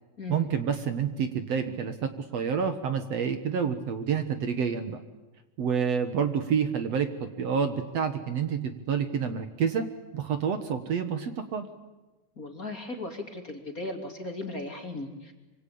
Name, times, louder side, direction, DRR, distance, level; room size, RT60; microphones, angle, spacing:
voice 1, 0.3-5.0 5.6-9.9 10.1-11.7, right 7 dB, 60° right, 9 dB, 2.4 m, -28 dB
voice 2, 12.4-15.3, left 2 dB, 25° left, 4 dB, 2.9 m, -37 dB
26.0 x 25.0 x 8.6 m, 1.1 s
omnidirectional pair, 3.7 m